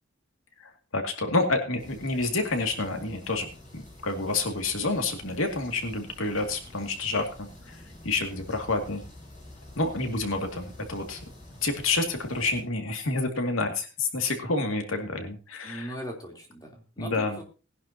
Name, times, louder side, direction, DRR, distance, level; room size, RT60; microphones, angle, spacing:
voice 1, 0.9-3.5 3.7-9.0 9.8-11.2 11.6-15.9 17.0-17.4, left 3 dB, 75° left, 4 dB, 2.3 m, -29 dB
sound 1, 1.8-12.6, left 1 dB, 35° left, 7.7 m, -48 dB
voice 2, 15.6-17.4, equal, 20° left, 1 dB, 3.3 m, -39 dB
19.0 x 11.0 x 2.8 m, 0.34 s
head